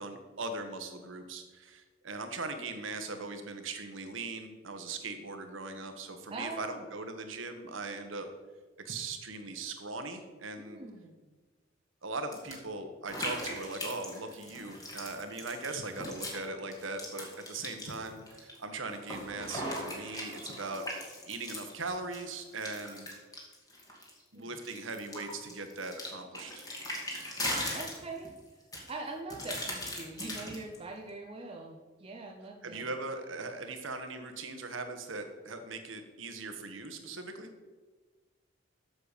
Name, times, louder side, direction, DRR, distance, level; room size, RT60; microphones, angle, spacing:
voice 1, 0.0-8.3 8.8-10.8 12.0-23.1 24.3-26.6 32.6-37.5, right 3 dB, 80° right, 7 dB, 1.3 m, -40 dB
voice 2, 6.3-6.8 10.6-11.3 24.3-24.6 27.7-28.3 28.9-32.9, right 3 dB, 30° right, 2 dB, 0.7 m, -42 dB
sound 1, 12.3-12.5 13.1-16.4 16.7-18.6 18.9-24.2 24.6-28.4 28.7-30.8, left 1 dB, 20° left, 2.2 m, -39 dB
7.7 x 6.8 x 6.7 m, 1.3 s
head